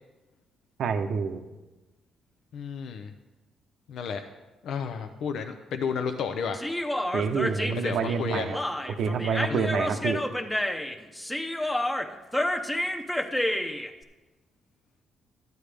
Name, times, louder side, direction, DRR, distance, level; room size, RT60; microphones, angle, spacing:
voice 1, 0.8-1.4 7.1-8.6 9.0-10.2, right 6 dB, 70° right, 8 dB, 0.8 m, -27 dB
voice 2, 2.5-3.1 3.9-4.2 4.6-6.6 7.8-8.5 9.5-9.8, left 6 dB, 75° left, 7 dB, 0.6 m, -32 dB
Human voice, 6.5-13.9, left 1 dB, 10° left, 0.8 m, -29 dB
12.5 x 9.3 x 3.4 m, 1.1 s
cardioid pair, 90°, 0 cm